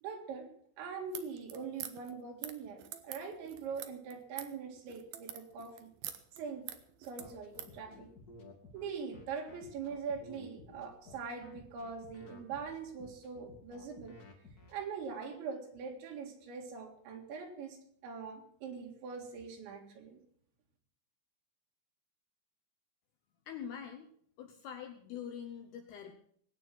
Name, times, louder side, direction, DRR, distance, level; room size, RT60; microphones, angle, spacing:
voice 1, 0.0-0.5 0.8-5.9 6.4-6.7 7.0-8.1 8.7-14.1 14.7-20.2, right 5 dB, 70° right, 3 dB, 4.2 m, -42 dB
sound 1, 1.0-7.8, right 11 dB, 85° right, 2.1 m, -46 dB
sound 2, 7.2-14.7, left 2 dB, 55° left, 1.0 m, -54 dB
voice 2, 23.5-24.1 24.4-26.1, left 8 dB, 75° left, 5 dB, 2.5 m, -44 dB
20.5 x 9.2 x 6.1 m, 0.65 s
omnidirectional pair, 5.8 m